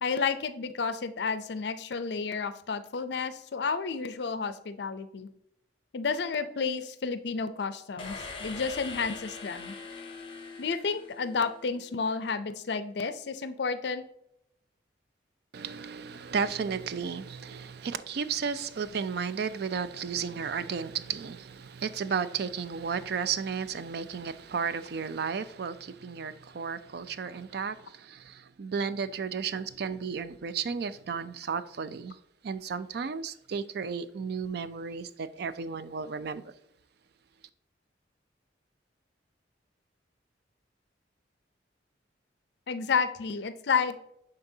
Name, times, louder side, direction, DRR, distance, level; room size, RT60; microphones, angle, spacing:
voice 1, 0.0-5.3 5.9-9.7 10.6-14.0 42.7-44.0, left 5 dB, 60° left, 0.5 m, -31 dB
sound 1, 8.0-11.8, left 4 dB, 30° left, 1.0 m, -42 dB
voice 2, 15.5-32.2 32.4-36.5, right 6 dB, 60° right, 0.4 m, -33 dB
9.6 x 3.8 x 2.7 m
head